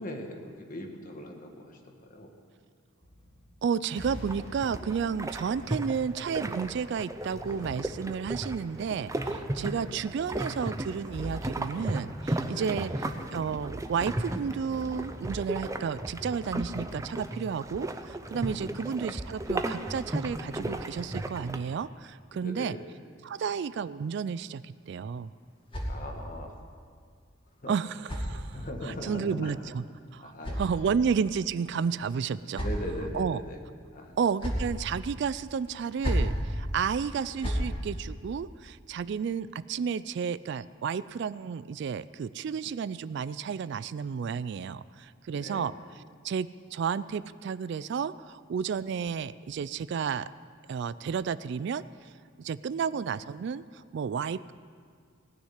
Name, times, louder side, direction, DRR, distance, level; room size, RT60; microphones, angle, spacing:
voice 1, 0.0-2.3 9.5-9.9 12.4-12.8 18.5-18.8 22.3-22.8 25.8-26.5 27.6-27.7 28.5-29.5 30.2-30.6 30.8-31.0 32.5-33.6 33.9-34.2 45.3-45.7, equal, 40° left, 3 dB, 1.6 m, -40 dB
sound 1, 3.0-6.4 7.4-12.8 13.1-15.9, equal, 60° left, 3.3 m, -46 dB
voice 2, 3.6-12.9 13.3-22.8 23.2-25.3 27.7-29.8 30.1-32.7 33.1-33.4 34.2-45.7 46.2-50.3 50.7-52.1 52.4-54.5, right 6 dB, 55° right, 16 dB, 0.3 m, -32 dB
sound 2, 4.2-21.6, right 1 dB, 15° right, 0.6 m, -35 dB
sound 3, 24.8-26.5 27.5-28.9 29.9-31.2 32.1-33.1 34.0-34.8 35.8-36.4 37.1-37.7, equal, 25° left, 2.2 m, -34 dB
17.5 x 6.5 x 9.9 m, 2.1 s
head